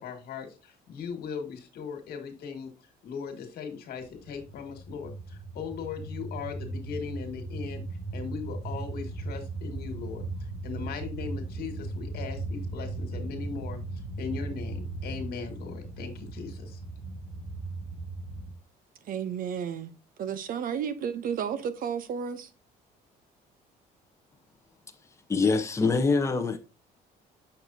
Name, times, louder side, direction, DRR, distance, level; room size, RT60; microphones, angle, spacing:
voice 1, 0.0-2.7 3.0-7.8 8.1-10.2 10.6-13.8 14.2-16.8, left 6 dB, 65° left, 1.8 m, -38 dB
sound 1, 4.1-18.5, right 2 dB, 90° right, 2.4 m, -37 dB
voice 2, 19.1-19.9 20.2-22.5, right 7 dB, 55° right, 0.7 m, -32 dB
voice 3, 25.3-26.6, left 4 dB, 15° left, 0.8 m, -24 dB
6.5 x 5.8 x 2.7 m
cardioid pair, 110°, 17 cm